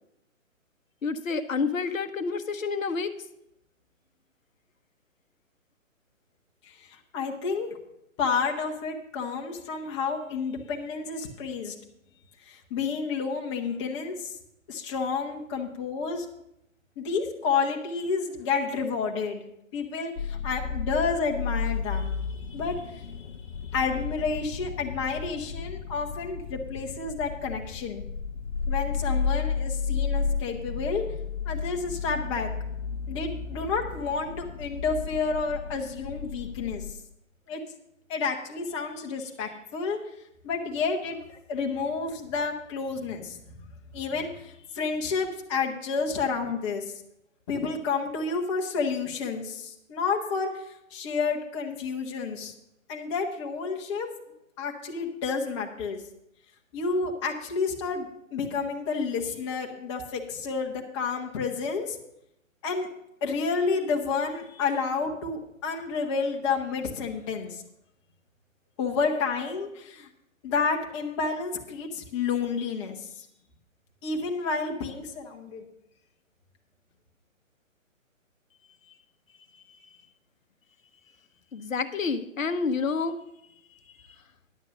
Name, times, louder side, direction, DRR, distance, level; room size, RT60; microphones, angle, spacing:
voice 1, 1.0-3.1 79.7-79.8 81.5-83.2, left 4 dB, 75° left, 10 dB, 0.9 m, -29 dB
voice 2, 6.6-7.8 8.2-11.7 12.4-14.4 14.7-16.3 17.0-19.4 19.7-28.0 28.7-31.0 31.5-32.5 33.1-36.8 37.5-37.6 38.1-40.0 40.4-43.4 43.9-46.9 47.5-52.5 52.9-54.1 54.6-56.0 56.7-62.0 62.6-62.9 63.2-67.6 68.8-70.1 70.4-73.3 74.0-75.7, left 5 dB, 20° left, 1 dB, 1.1 m, -30 dB
sound 1, 20.2-36.9, left 5 dB, 50° left, 0.7 m, -33 dB
10.5 x 7.2 x 6.6 m, 0.80 s
hypercardioid pair, 145°, 40 cm